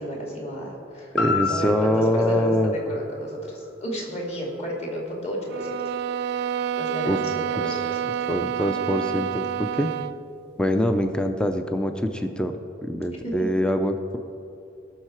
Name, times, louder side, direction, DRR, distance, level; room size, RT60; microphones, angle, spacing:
voice 1, 0.0-5.8 6.2-8.3 13.2-13.5, equal, 35° left, -2 dB, 2.5 m, -32 dB
sound 1, 1.1-5.2 5.7-5.8, left 4 dB, 75° left, 1.6 m, -32 dB
voice 2, 1.1-2.7 7.1-7.2 7.7-7.8 8.3-9.9 10.6-14.2, equal, 5° left, 7 dB, 0.5 m, -24 dB
sound 2, 5.5-10.2, right 9 dB, 55° right, 0.3 m, -28 dB
19.0 x 6.5 x 4.5 m, 2.7 s
head